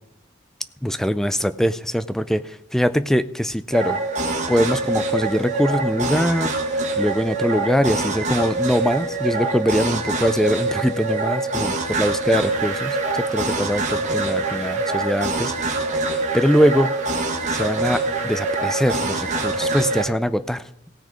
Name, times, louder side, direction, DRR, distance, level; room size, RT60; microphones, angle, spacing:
voice 1, 0.8-4.0 4.5-15.5 16.1-16.9 17.5-20.6, equal, ahead, 13 dB, 0.4 m, -22 dB
sound 1, 3.7-20.0, right 2 dB, 40° right, 1.5 m, -24 dB
17.5 x 6.4 x 5.1 m, 0.78 s
head